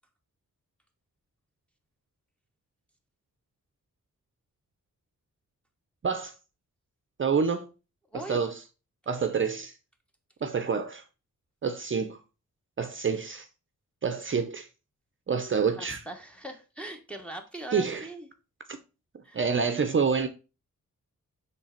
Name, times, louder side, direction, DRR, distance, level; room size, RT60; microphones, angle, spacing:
voice 1, 6.0-6.3 7.2-7.7 8.1-8.6 9.1-9.7 10.4-11.0 11.6-12.2 12.8-13.5 14.0-14.7 15.3-16.0 17.7-18.1 18.7-18.8 19.3-20.3, right 5 dB, 40° right, 0.6 m, -27 dB
voice 2, 8.1-8.5 15.8-18.3 19.2-19.4, right 1 dB, 5° left, 1.1 m, -40 dB
7.3 x 3.3 x 4.4 m
wide cardioid pair, 130°, 31 cm